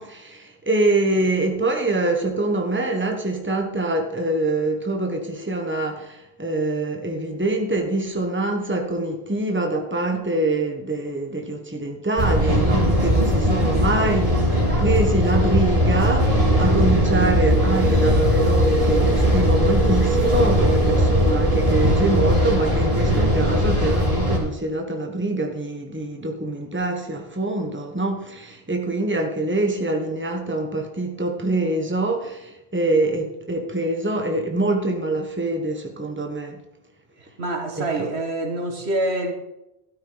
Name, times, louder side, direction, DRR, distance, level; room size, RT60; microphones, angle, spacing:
voice 1, 0.0-14.5 14.8-36.6 37.7-38.1, right 2 dB, 10° right, 1.3 m, -25 dB
sound 1, 12.2-24.4, equal, 35° right, 3.4 m, -19 dB
voice 2, 37.2-39.3, right 1 dB, 90° right, 2.2 m, -26 dB
13.0 x 13.0 x 4.0 m
omnidirectional pair, 1.0 m